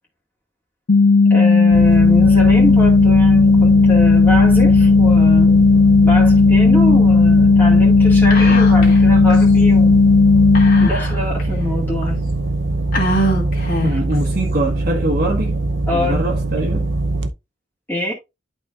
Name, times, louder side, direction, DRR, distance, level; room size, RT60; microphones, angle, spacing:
sound 1, 0.9-10.9, left 4 dB, 70° left, 0.7 m, -12 dB
voice 1, 1.3-5.6 6.0-10.1 10.8-12.2 15.9-16.3 17.9-18.1, left 1 dB, 10° left, 2.1 m, -24 dB
sound 2, 1.7-17.3, right 2 dB, 85° right, 0.8 m, -22 dB
Whispering, 8.3-9.0 9.3-9.4 10.6-11.4 12.0-12.1 12.9-14.1, equal, 50° left, 2.5 m, -23 dB
voice 2, 13.8-15.6 15.9-16.9, right 1 dB, 55° right, 1.5 m, -23 dB
11.5 x 4.5 x 2.5 m
head